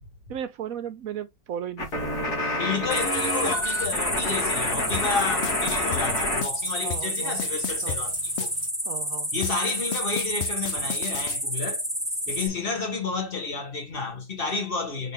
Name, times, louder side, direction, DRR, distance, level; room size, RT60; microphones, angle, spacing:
voice 1, 0.3-2.4 4.9-5.0 5.4-5.5 6.8-7.4 7.8-8.0 8.8-9.3, right 9 dB, 70° right, 1.0 m, -36 dB
sound 1, 1.8-6.4 6.7-8.7, left 1 dB, 85° left, 2.4 m, -29 dB
voice 2, 2.6-8.5 9.3-11.8 12.3-15.1, left 4 dB, 40° left, 1.7 m, -31 dB
sound 2, 2.9-12.5, equal, 5° right, 1.0 m, -30 dB
sound 3, 4.9-8.7 9.4-11.4, left 10 dB, 65° left, 0.7 m, -33 dB
4.4 x 3.3 x 3.4 m
omnidirectional pair, 1.6 m